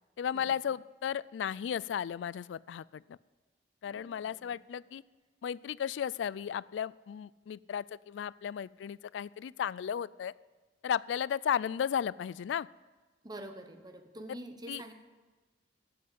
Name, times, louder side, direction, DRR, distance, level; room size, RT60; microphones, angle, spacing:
voice 1, 0.2-3.2 3.8-5.0 5.4-10.3 10.8-12.7 14.7-14.8, left 8 dB, 85° left, 21 dB, 0.3 m, -34 dB
voice 2, 3.9-4.6 13.2-14.9, right 1 dB, 25° right, 6 dB, 1.1 m, -46 dB
12.5 x 7.9 x 7.6 m, 1.3 s
head